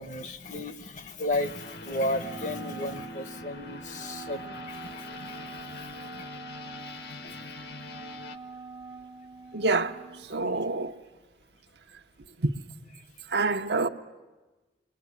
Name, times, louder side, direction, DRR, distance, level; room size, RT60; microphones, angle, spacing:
voice 1, 0.0-6.3 7.1-7.4 10.3-10.6, left 1 dB, 45° left, 1.0 m, -34 dB
sound 1, 1.4-8.4, left 2 dB, 60° left, 1.3 m, -43 dB
Wind instrument woodwind instrument, 2.1-10.3, right 3 dB, 25° right, 0.8 m, -45 dB
voice 2, 9.5-10.0 10.2-10.9 12.4-12.5 13.3-13.9, right 3 dB, 75° right, 1.0 m, -26 dB
27.0 x 22.0 x 9.8 m
head